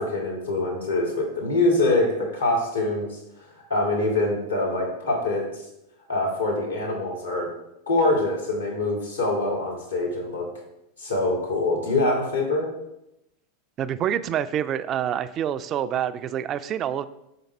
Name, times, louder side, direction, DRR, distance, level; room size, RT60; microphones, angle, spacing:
voice 1, 0.0-3.2 3.7-5.6 6.1-7.5 7.9-10.5 11.0-12.7, left 2 dB, 85° left, -2 dB, 2.1 m, -24 dB
voice 2, 13.8-17.1, right 10 dB, 35° right, 13 dB, 0.3 m, -27 dB
5.9 x 5.1 x 4.3 m, 0.85 s
figure-of-eight pair, 85°, 0 cm